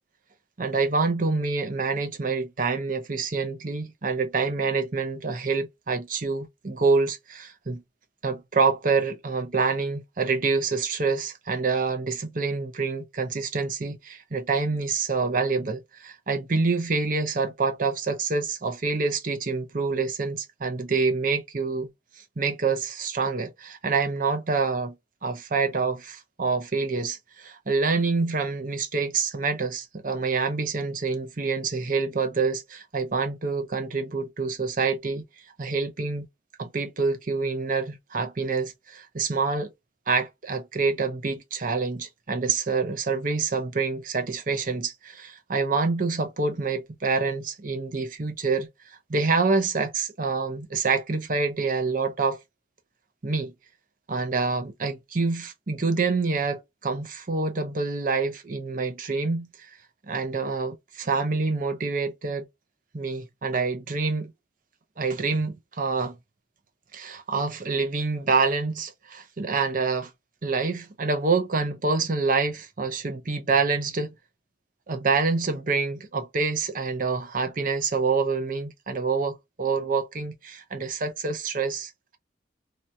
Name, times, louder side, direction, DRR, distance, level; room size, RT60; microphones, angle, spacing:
voice 1, 0.6-7.8 8.2-21.9 22.2-25.0 25.2-36.3 36.6-39.7 40.1-52.4 53.2-53.5 54.1-59.8 60.0-62.5 62.9-64.3 65.0-66.2 66.9-70.1 70.4-74.1 74.9-82.2, right 4 dB, 45° right, 0.7 m, -27 dB
2.8 x 2.8 x 2.2 m
head